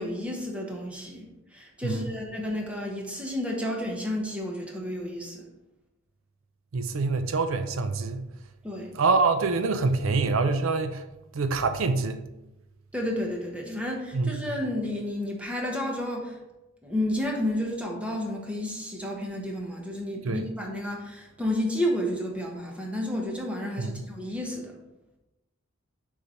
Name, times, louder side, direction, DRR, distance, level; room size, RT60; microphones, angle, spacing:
voice 1, 0.0-5.4 8.6-8.9 12.9-16.4 16.8-24.7, left 1 dB, 5° right, 1.1 m, -31 dB
voice 2, 1.8-2.1 6.7-8.3 8.9-11.0 11.3-12.2 14.1-14.6 20.2-20.4 23.8-24.0, right 4 dB, 70° right, 0.5 m, -26 dB
6.7 x 3.3 x 5.4 m
head